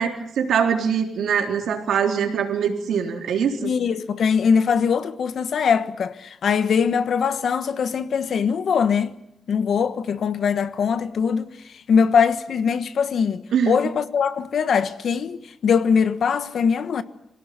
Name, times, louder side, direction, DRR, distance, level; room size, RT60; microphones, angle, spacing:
voice 1, 0.0-3.7 13.5-13.8, right 7 dB, 80° right, 3.7 m, -23 dB
voice 2, 3.6-9.1 9.5-11.5 11.9-17.0, left 6 dB, 55° left, 1.3 m, -21 dB
25.5 x 17.5 x 9.5 m
wide cardioid pair, 155°, 0 cm